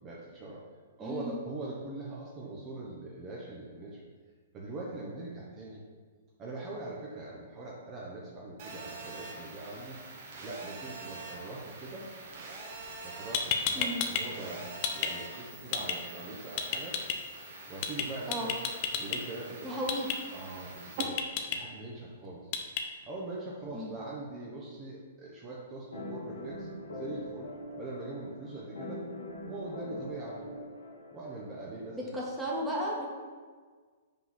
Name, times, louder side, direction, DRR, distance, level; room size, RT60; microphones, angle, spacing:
voice 1, 0.0-0.6 1.0-4.0 4.5-5.8 6.4-10.0 10.4-12.1 13.0-17.0 17.7-18.6 19.0-19.8 20.3-21.2 21.5-22.5 23.1-29.1 29.5-30.5 31.1-32.2, right 2 dB, 25° right, -5 dB, 1.1 m, -42 dB
voice 2, 1.0-1.4 13.7-14.1 18.3-18.5 19.6-20.1 23.7-24.0 31.9-33.1, equal, 5° right, -5 dB, 1.5 m, -34 dB
Telephone, 8.6-21.0, right 3 dB, 50° right, 1.4 m, -45 dB
sound 1, 13.0-13.1 13.3-14.2 14.5-15.1 15.7-15.9 16.6-17.1 17.8-18.0 18.3-19.2 19.9-20.1 21.0-21.6 22.5-22.8, left 7 dB, 40° left, 0.7 m, -30 dB
sound 2, 25.9-31.6, left 1 dB, 90° left, 1.3 m, -42 dB
5.3 x 4.0 x 5.9 m, 1.5 s
hypercardioid pair, 140°, 0 cm